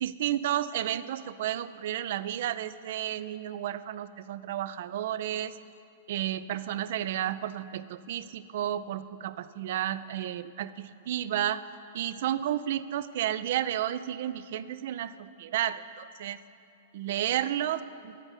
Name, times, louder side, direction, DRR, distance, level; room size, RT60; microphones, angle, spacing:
voice 1, 0.0-5.6 6.1-11.6 11.9-16.4 16.9-18.1, right 11 dB, 65° right, 15 dB, 0.3 m, -32 dB
8.0 x 5.6 x 7.1 m, 2.5 s
hypercardioid pair, 140°, 0 cm